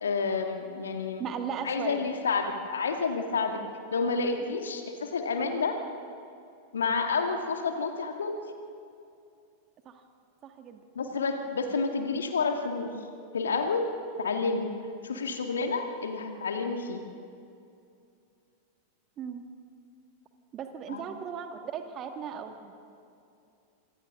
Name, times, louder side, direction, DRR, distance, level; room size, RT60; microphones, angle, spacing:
voice 1, 0.0-1.2 1.6-3.6 3.9-5.8 6.7-8.3 11.0-12.9 13.3-13.9 14.2-14.7 15.0-17.0 20.9-21.0, left 4 dB, 70° left, 5 dB, 1.9 m, -29 dB
voice 2, 1.2-2.1 4.4-4.5 9.9-10.0 10.4-10.8 19.2-19.4 20.5-22.7, right 7 dB, 30° right, 6 dB, 1.9 m, -37 dB
27.0 x 26.0 x 3.8 m, 2.5 s
figure-of-eight pair, 90°, 0 cm